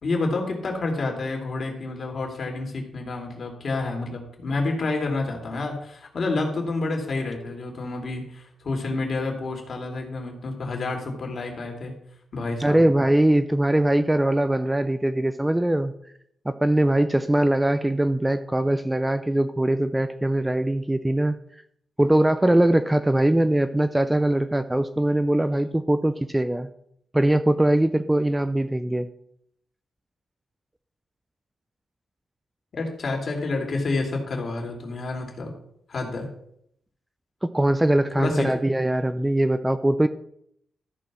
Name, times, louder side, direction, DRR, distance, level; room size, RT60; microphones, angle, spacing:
voice 1, 0.0-11.9 12.3-12.8 32.7-35.5 35.9-36.3 38.2-38.5, left 3 dB, 45° left, 1 dB, 2.8 m, -29 dB
voice 2, 12.6-15.9 16.5-21.4 22.0-26.7 27.1-29.1 37.4-40.1, right 1 dB, 10° right, 10 dB, 0.4 m, -21 dB
13.5 x 4.7 x 6.1 m, 0.72 s
wide cardioid pair, 135°, 0 cm